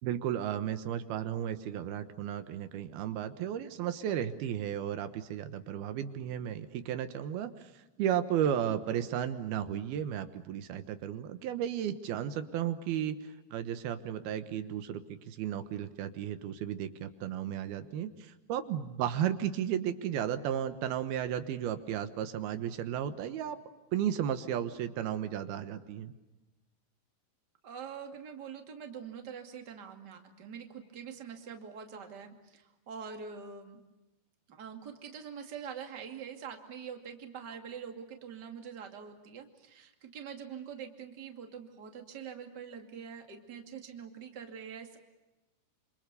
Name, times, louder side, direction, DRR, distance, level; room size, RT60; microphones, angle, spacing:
voice 1, 0.0-23.6 23.9-26.1, right 10 dB, 80° right, 10 dB, 3.1 m, -34 dB
voice 2, 27.6-33.8 34.5-45.0, right 7 dB, 30° right, 5 dB, 2.5 m, -44 dB
27.5 x 26.5 x 6.9 m, 1.1 s
omnidirectional pair, 4.4 m